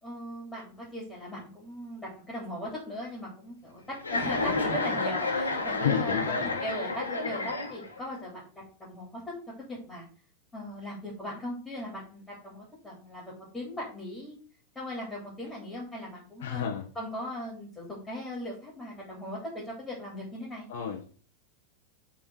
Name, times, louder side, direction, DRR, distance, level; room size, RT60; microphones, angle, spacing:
voice 1, 0.0-9.3 9.7-10.0 10.5-14.4 14.7-16.6 16.9-20.7, left 1 dB, 10° left, -5 dB, 3.3 m, -39 dB
Chuckle chortle, 4.0-8.1, left 3 dB, 80° left, 1.8 m, -30 dB
voice 2, 5.8-6.5 16.4-16.9 20.7-21.1, left 8 dB, 55° left, 0 dB, 1.3 m, -31 dB
8.2 x 3.8 x 4.8 m, 0.41 s
figure-of-eight pair, 90°, 0 cm